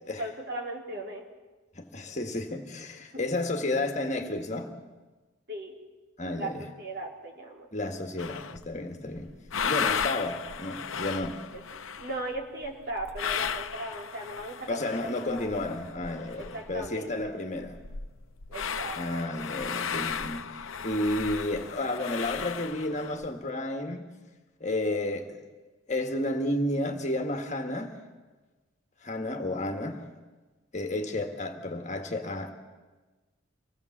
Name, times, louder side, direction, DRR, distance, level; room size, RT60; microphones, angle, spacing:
voice 1, 0.2-1.2 3.1-3.4 5.5-5.8 6.4-6.5 6.8-7.7 9.3-9.4 10.1-10.2 12.0-14.9 15.3-15.6 16.4-17.3 18.5-19.2, right 1 dB, 50° right, 3.6 m, -37 dB
voice 2, 1.8-4.7 6.2-6.6 7.7-9.3 9.6-11.4 14.7-17.8 18.9-20.5 20.8-24.1 24.6-25.4 25.9-27.9 29.0-30.0 30.7-32.5, left 1 dB, 35° left, 1.7 m, -32 dB
sound 1, 8.2-8.7 9.2-17.0 17.2-17.3 17.5-23.3, left 7 dB, 75° left, 0.8 m, -35 dB
25.5 x 18.0 x 7.3 m
head